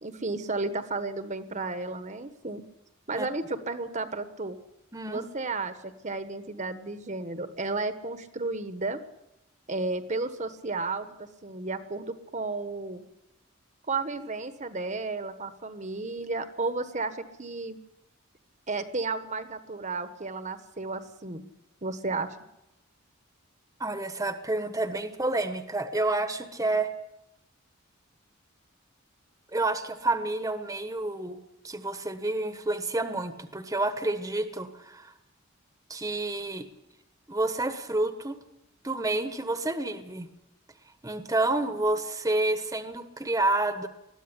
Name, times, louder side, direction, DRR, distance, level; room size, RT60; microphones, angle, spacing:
voice 1, 0.0-2.6 3.1-4.6 5.1-9.0 9.7-13.0 13.9-17.8 18.7-21.4 21.8-22.4, right 3 dB, 35° right, 9 dB, 1.3 m, -33 dB
voice 2, 4.9-5.2 23.8-26.9 29.5-31.4 31.6-35.1 35.9-36.7 37.3-38.4 38.8-40.3 41.0-43.9, right 2 dB, 15° right, 8 dB, 1.3 m, -29 dB
21.0 x 14.0 x 9.9 m, 0.88 s
head